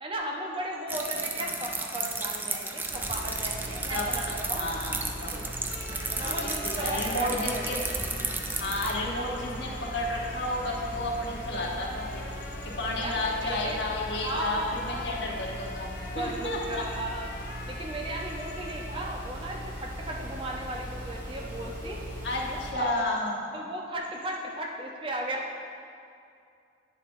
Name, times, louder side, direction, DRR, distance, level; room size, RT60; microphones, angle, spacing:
voice 1, 0.0-4.7 5.9-7.8 13.0-13.8 14.1-15.3 16.1-17.3 17.7-22.0 22.5-23.1 23.5-25.6, right 1 dB, 30° right, -1 dB, 0.7 m, -36 dB
sound 1, 0.9-8.9, right 3 dB, 10° right, 0.3 m, -34 dB
sound 2, 2.9-22.7, equal, 45° right, 1.9 m, -39 dB
voice 2, 3.9-5.4 6.2-7.8 8.6-12.2 12.6-16.8 22.2-23.5, left 1 dB, 70° left, -2 dB, 1.1 m, -32 dB
sound 3, 5.7-18.9, left 3 dB, 50° left, 0.5 m, -45 dB
9.9 x 7.2 x 2.6 m, 2.4 s
head